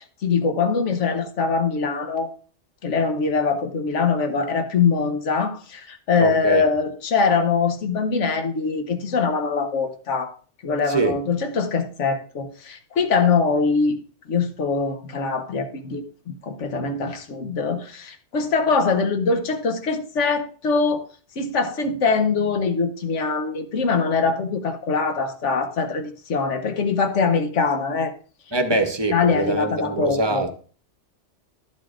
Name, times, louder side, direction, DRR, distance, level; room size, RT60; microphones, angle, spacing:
voice 1, 0.0-2.3 2.8-10.3 10.6-14.0 14.3-21.1 21.4-28.1 29.1-30.4, left 5 dB, 80° left, 1.3 m, -23 dB
voice 2, 6.2-6.7 10.9-11.2 28.5-30.5, right 2 dB, 25° right, 0.8 m, -23 dB
12.0 x 8.0 x 2.5 m
omnidirectional pair, 1.2 m